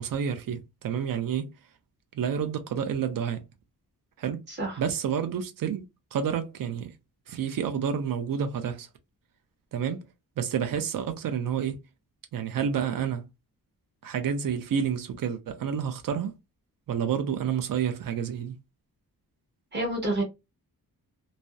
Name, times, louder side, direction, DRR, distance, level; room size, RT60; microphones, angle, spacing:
voice 1, 0.0-1.5 2.1-3.4 4.2-4.4 4.8-5.8 6.1-6.9 7.3-8.9 9.7-10.0 10.4-11.8 12.3-13.2 14.0-16.3 16.9-18.6, right 8 dB, 60° right, 0.5 m, -29 dB
voice 2, 4.5-4.8 19.7-20.2, right 1 dB, 30° right, 1.3 m, -28 dB
2.7 x 2.0 x 2.2 m
wide cardioid pair, 170°, 38 cm